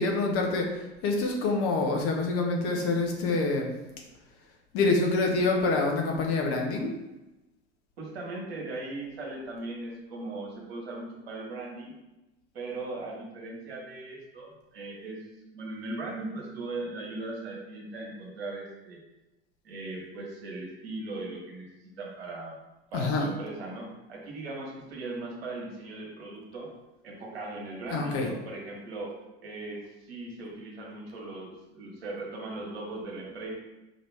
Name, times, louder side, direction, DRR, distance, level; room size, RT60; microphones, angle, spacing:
voice 1, 0.0-3.7 4.7-6.9 22.9-23.3 27.9-28.3, left 3 dB, 45° left, 1 dB, 1.0 m, -26 dB
voice 2, 8.0-11.9 12.5-15.2 15.5-19.0 19.6-21.7 22.0-22.6 22.9-26.7 27.0-29.1 29.4-33.5, right 2 dB, 70° right, -2 dB, 1.4 m, -38 dB
5.0 x 2.9 x 3.4 m, 1.0 s
figure-of-eight pair, 70°, 32 cm